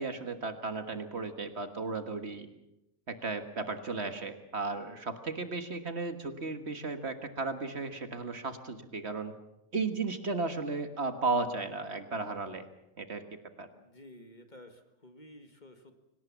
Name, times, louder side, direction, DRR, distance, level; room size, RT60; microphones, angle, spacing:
voice 1, 0.0-2.5 3.1-9.3 9.7-12.7 13.0-13.2 13.6-13.7, right 3 dB, 50° right, 8 dB, 1.8 m, -35 dB
voice 2, 13.7-16.1, left 1 dB, 35° left, 7 dB, 1.8 m, -53 dB
24.5 x 18.5 x 7.3 m, 0.88 s
omnidirectional pair, 1.5 m